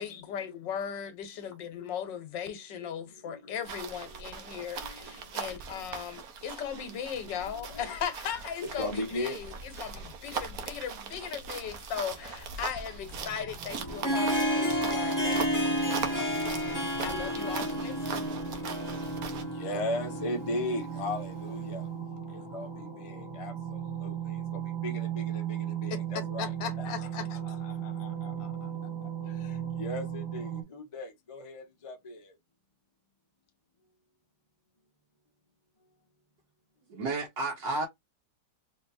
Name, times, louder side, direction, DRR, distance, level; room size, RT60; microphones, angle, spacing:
voice 1, 0.0-16.6 17.0-18.3 25.9-27.4, left 8 dB, 80° left, 1.6 m, -38 dB
sound 1, 3.6-19.4, right 6 dB, 60° right, 1.1 m, -40 dB
voice 2, 7.5-7.9 8.6-9.4 19.6-21.8 22.5-23.5 24.0-24.1 24.8-25.4 25.8-26.5 26.8-28.5 29.8-32.2, left 1 dB, 45° left, 0.4 m, -37 dB
sound 2, 13.0-30.6, right 9 dB, 20° right, 0.6 m, -38 dB
Harp, 13.7-21.5, equal, 10° left, 1.1 m, -31 dB
voice 3, 36.9-37.9, right 2 dB, 80° right, 1.7 m, -31 dB
4.3 x 2.8 x 2.6 m
omnidirectional pair, 1.9 m